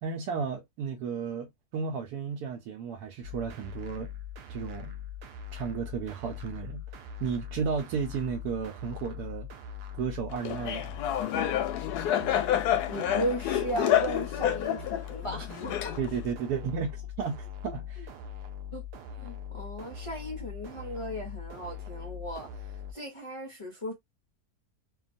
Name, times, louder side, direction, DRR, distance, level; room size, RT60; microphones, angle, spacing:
voice 1, 0.0-4.1 4.5-4.9 5.5-6.8 7.2-9.5 9.9-11.0 16.0-18.0, right 6 dB, 90° right, 1.2 m, -33 dB
sound 1, 3.2-22.9, left 7 dB, 70° right, 0.5 m, -41 dB
Laughter, 10.5-16.3, left 11 dB, 90° left, 1.1 m, -28 dB
voice 2, 12.9-16.0 18.7-18.9 19.1-23.9, right 1 dB, 55° left, 0.3 m, -36 dB
2.8 x 2.3 x 2.5 m
omnidirectional pair, 1.6 m